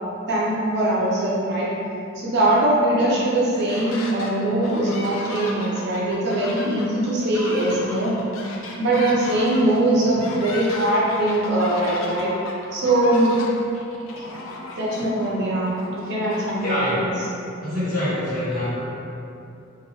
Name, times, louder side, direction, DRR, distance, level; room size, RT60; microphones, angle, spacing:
voice 1, 0.3-1.7 2.2-8.1 8.8-12.3 12.7-13.3 14.2-14.3 14.8-17.1, right 1 dB, 55° right, -5 dB, 0.6 m, -21 dB
sound 1, 3.3-4.3 4.6-16.9, left 2 dB, 80° left, 0.4 m, -36 dB
voice 2, 16.6-17.0 17.6-18.8, left 1 dB, 45° left, -12 dB, 1.4 m, -25 dB
3.0 x 2.6 x 3.0 m, 2.7 s
head